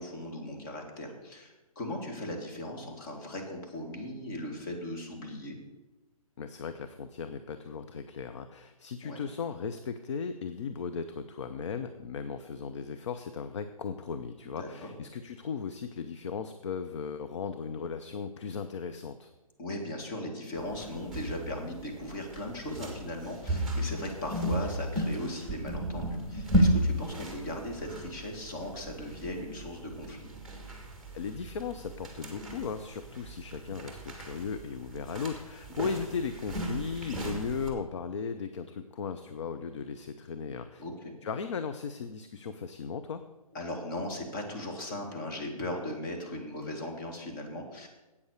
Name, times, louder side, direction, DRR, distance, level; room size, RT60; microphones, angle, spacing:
voice 1, 0.0-5.6 9.0-9.2 14.4-14.9 19.6-30.3 35.8-35.9 40.8-41.1 43.5-47.9, left 1 dB, 35° left, 1 dB, 2.2 m, -38 dB
voice 2, 6.4-19.3 31.1-40.8 41.2-43.2, left 6 dB, 50° left, 9 dB, 0.6 m, -37 dB
sound 1, 20.6-37.7, right 1 dB, ahead, 1.6 m, -34 dB
8.4 x 7.9 x 6.6 m, 1.1 s
figure-of-eight pair, 140°, 19 cm